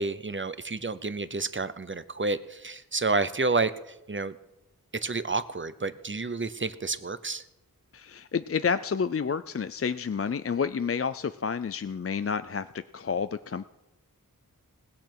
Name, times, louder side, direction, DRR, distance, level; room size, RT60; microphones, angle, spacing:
voice 1, 0.0-3.7 4.1-4.3 5.0-7.4, right 3 dB, 35° right, 14 dB, 0.7 m, -29 dB
voice 2, 7.9-13.7, left 6 dB, 40° left, 13 dB, 0.4 m, -30 dB
19.5 x 6.8 x 6.0 m, 0.95 s
wide cardioid pair, 55°, 36 cm